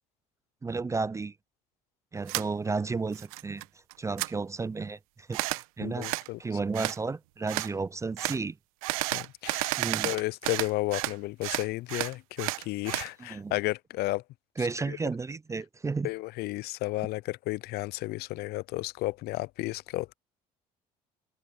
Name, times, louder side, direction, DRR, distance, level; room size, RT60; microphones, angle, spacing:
voice 1, 0.6-1.3 2.1-3.6 4.0-5.4 5.8-6.1 6.4-8.6 9.8-10.1 13.2-13.5 14.6-16.1, right 4 dB, 15° right, 0.4 m, -32 dB
sound 1, 2.3-2.5 2.9-3.6 3.9-4.3 5.3-5.6 6.0-6.3 6.7-7.0 7.5-7.7 8.2-8.4 8.8-11.2 11.4-13.1, right 21 dB, 80° right, 1.0 m, -32 dB
voice 2, 5.8-6.4 9.1-9.8 10.0-14.2 14.6-15.0 16.0-20.1, left 19 dB, 65° left, 0.6 m, -33 dB
hypercardioid pair, 70°, 18 cm